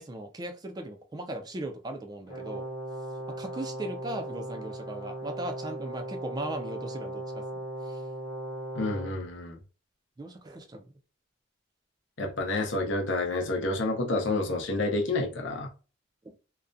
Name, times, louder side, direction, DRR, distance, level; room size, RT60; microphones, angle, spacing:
voice 1, 0.0-2.7 3.3-8.0 10.2-10.9, right 1 dB, 20° right, 0.3 m, -38 dB
Brass instrument, 2.3-9.2, right 1 dB, 30° left, 0.8 m, -38 dB
voice 2, 8.7-9.6 12.2-15.7, left 2 dB, 70° left, 0.6 m, -29 dB
2.3 x 2.1 x 2.5 m
head